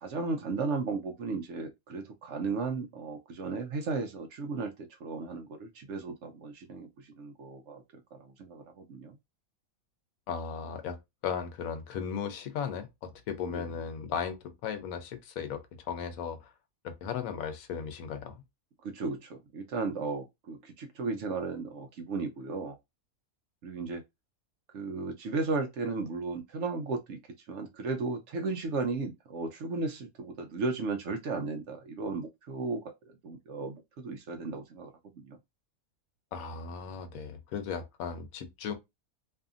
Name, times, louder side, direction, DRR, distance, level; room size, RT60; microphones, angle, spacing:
voice 1, 0.0-7.8 8.1-9.2 13.5-13.6 18.8-22.8 23.6-24.0 24.7-27.2 27.5-32.8 33.2-35.4, right 3 dB, 65° right, 0.8 m, -35 dB
voice 2, 10.3-16.5 16.8-18.4 36.3-38.7, left 7 dB, 80° left, 1.1 m, -36 dB
2.7 x 2.5 x 2.4 m
omnidirectional pair, 1.5 m